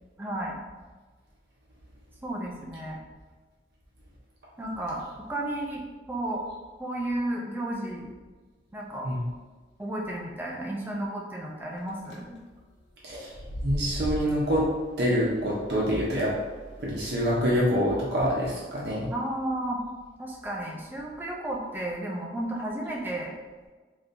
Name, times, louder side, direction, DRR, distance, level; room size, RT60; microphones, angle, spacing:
voice 1, 0.2-0.6 2.2-3.0 4.6-6.4 6.8-8.1 8.7-9.1 9.8-12.3 19.1-19.8 20.2-23.3, right 1 dB, 10° right, -2 dB, 0.5 m, -33 dB
sound 1, 11.8-12.1 13.2-17.7, equal, 90° left, 0.7 m, -39 dB
voice 2, 13.6-14.6 15.0-16.3 16.8-19.1, equal, 65° right, -6 dB, 0.7 m, -26 dB
3.7 x 2.9 x 2.6 m, 1.3 s
head